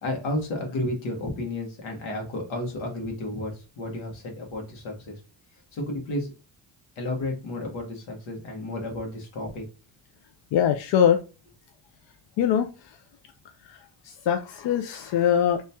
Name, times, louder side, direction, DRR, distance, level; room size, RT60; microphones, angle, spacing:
voice 1, 0.0-5.2 5.7-6.3 6.9-9.6, left 1 dB, 85° left, 1 dB, 1.5 m, -32 dB
voice 2, 10.5-11.2 12.4-13.0 13.6-15.6, left 9 dB, 70° left, 6 dB, 0.5 m, -23 dB
3.0 x 2.8 x 3.4 m, 0.32 s
cardioid pair, 90°, 46 cm